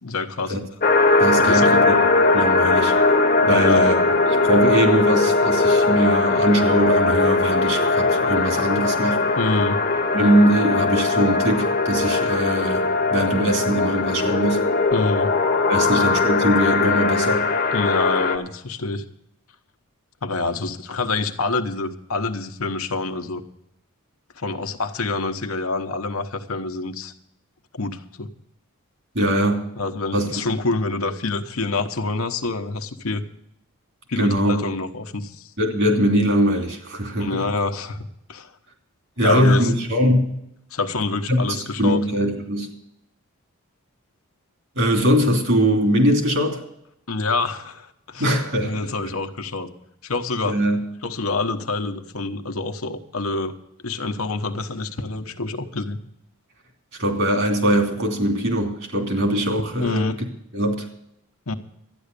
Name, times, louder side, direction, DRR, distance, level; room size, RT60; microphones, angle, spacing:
voice 1, 0.0-0.6 1.4-1.8 3.4-3.8 9.4-9.8 14.9-15.3 15.8-16.0 17.7-19.0 20.2-23.4 24.4-27.1 27.7-28.3 29.8-33.2 34.1-35.5 37.2-38.0 38.3-38.5 39.2-39.7 40.7-42.0 47.1-49.7 50.0-50.6 51.0-53.5 53.8-56.0 59.8-60.2 61.5-61.6, left 3 dB, 75° left, 7 dB, 1.1 m, -26 dB
sound 1, 0.8-18.4, left 3 dB, 40° left, 1.1 m, -19 dB
voice 2, 1.2-2.9 3.5-4.0 4.3-9.2 10.1-14.7 15.7-17.5 29.1-29.7 30.1-30.3 34.2-34.6 35.6-37.4 39.2-40.4 41.3-42.7 44.8-46.6 48.2-48.9 50.4-50.8 57.0-60.2 60.5-60.9, equal, 60° right, 3 dB, 2.9 m, -21 dB
12.5 x 10.0 x 6.8 m, 0.79 s
head